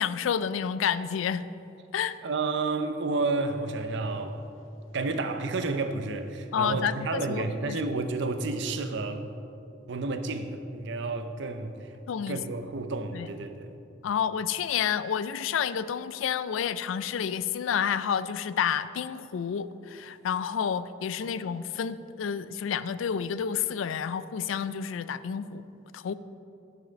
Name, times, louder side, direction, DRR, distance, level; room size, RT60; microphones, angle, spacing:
voice 1, 0.0-1.5 1.9-2.2 6.5-7.8 12.1-12.4 13.1-13.3 14.0-25.6 25.9-26.1, left 8 dB, 90° left, 0.4 m, -30 dB
voice 2, 2.2-4.4 4.9-9.3 9.9-11.9 12.3-13.7 21.2-21.3, right 3 dB, 65° right, 0.6 m, -31 dB
11.5 x 5.6 x 5.2 m
head